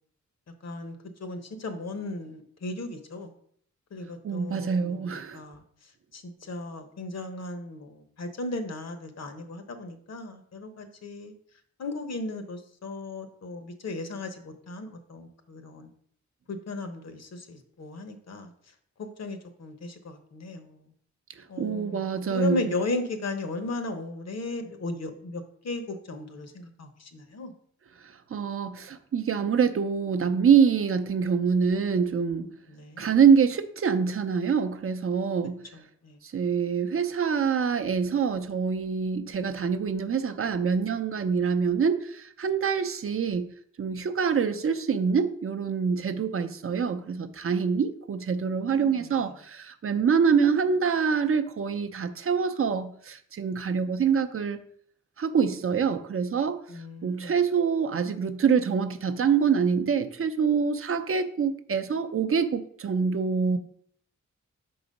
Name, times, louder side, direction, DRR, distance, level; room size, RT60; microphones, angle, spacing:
voice 1, 0.6-3.3 3.9-5.6 6.1-11.3 11.8-15.9 16.5-18.5 19.0-20.8 21.5-27.5 32.7-33.1 36.0-36.2 48.7-49.3 56.7-57.3, left 2 dB, 60° left, 0.9 m, -36 dB
voice 2, 4.2-5.4 21.6-22.7 28.3-32.5 33.0-35.6 36.3-43.5 43.8-54.6 55.2-56.6 57.0-63.6, right 6 dB, 50° right, 0.5 m, -25 dB
5.9 x 3.9 x 5.2 m
wide cardioid pair, 110°, 29 cm